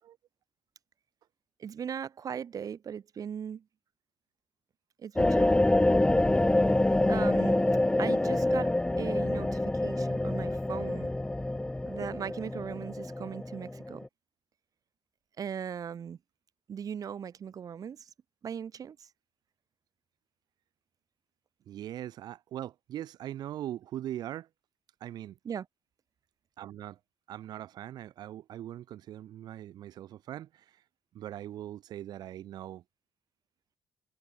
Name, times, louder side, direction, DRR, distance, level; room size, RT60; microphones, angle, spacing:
voice 1, 1.6-3.6 5.0-5.5 7.0-7.6 8.0-8.7 9.0-11.1 11.9-14.0 15.4-16.2 16.7-18.1 18.4-19.1 25.4-25.7, right 8 dB, 55° right, 4.2 m, -38 dB
sound 1, 5.2-14.1, left 1 dB, 15° left, 2.1 m, -26 dB
voice 2, 21.7-24.5 25.0-25.4 26.6-27.0 27.3-30.8 31.1-32.8, right 12 dB, 70° right, 6.3 m, -41 dB
supercardioid pair, 55°, 7 cm